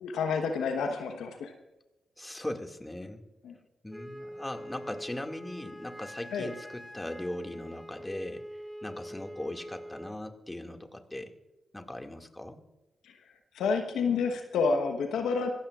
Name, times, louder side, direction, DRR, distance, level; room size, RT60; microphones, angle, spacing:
voice 1, 0.0-1.5 3.4-3.5 6.3-6.5 13.5-15.5, left 5 dB, 80° left, 5 dB, 1.2 m, -29 dB
voice 2, 2.2-3.2 3.8-8.5 8.8-11.3 11.7-12.6, left 1 dB, 15° left, 5 dB, 2.2 m, -39 dB
Wind instrument woodwind instrument, 3.9-10.2, equal, ahead, 3.1 m, -44 dB
26.0 x 15.5 x 2.5 m, 1.0 s
hypercardioid pair, 40°, 0 cm